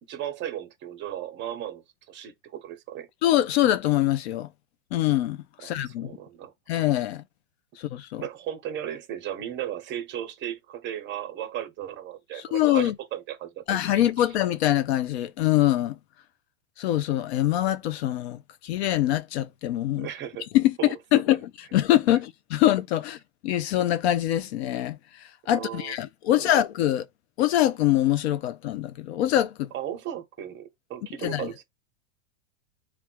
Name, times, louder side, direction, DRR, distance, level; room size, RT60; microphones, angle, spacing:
voice 1, 0.1-3.1 5.6-6.5 8.2-13.6 13.9-14.3 20.0-20.5 20.8-21.2 25.5-26.0 26.3-26.5 29.7-31.6, right 11 dB, 30° right, 0.9 m, -36 dB
voice 2, 3.2-4.5 4.9-6.1 6.7-7.2 7.8-8.2 12.4-12.9 13.7-16.0 16.8-20.1 20.5-21.4 21.7-23.2 23.4-27.1 27.4-29.7 31.2-31.5, left 13 dB, 55° left, 0.5 m, -24 dB
3.5 x 2.3 x 4.4 m
hypercardioid pair, 135°, 40 cm